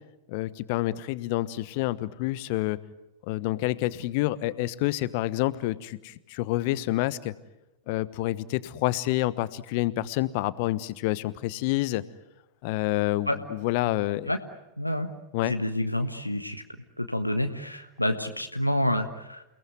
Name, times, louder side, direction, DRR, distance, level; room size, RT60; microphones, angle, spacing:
voice 1, 0.3-2.8 3.3-7.3 7.9-12.0 12.6-14.3 15.3-15.6, left 17 dB, 45° left, 17 dB, 1.1 m, -28 dB
voice 2, 14.8-15.1 15.4-16.6 17.0-19.4, left 1 dB, 90° left, 7 dB, 1.4 m, -28 dB
29.5 x 19.0 x 9.4 m, 0.93 s
figure-of-eight pair, 90°, 0 cm